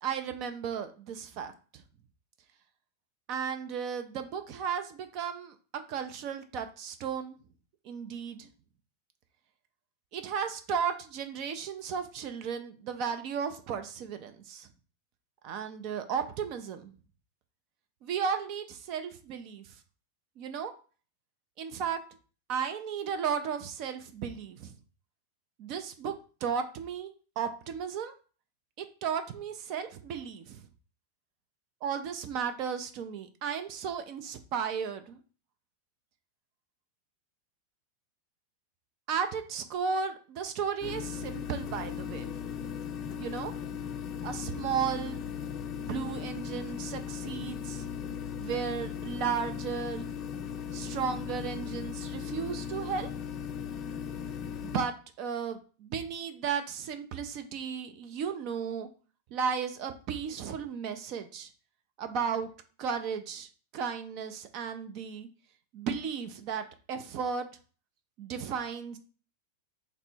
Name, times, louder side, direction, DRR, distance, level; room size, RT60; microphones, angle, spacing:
voice 1, 0.0-1.8 3.3-5.5 5.9-7.4 7.8-8.5 10.1-14.7 15.4-16.9 18.0-19.8 20.4-20.7 21.6-22.0 22.5-24.7 25.6-26.1 26.4-28.1 28.8-30.6 31.8-35.2 39.1-42.3 43.2-43.5 44.2-45.3 45.8-47.8 48.4-50.1 50.7-53.1 54.6-58.9 59.3-61.5 62.0-62.5 62.8-63.5 63.7-65.3 65.7-67.5 68.2-69.0, right 7 dB, 40° right, 8 dB, 0.4 m, -34 dB
sound 1, 40.8-54.9, left 8 dB, 30° left, 0.4 m, -37 dB
3.3 x 2.1 x 4.3 m, 0.38 s
figure-of-eight pair, 90°, 0 cm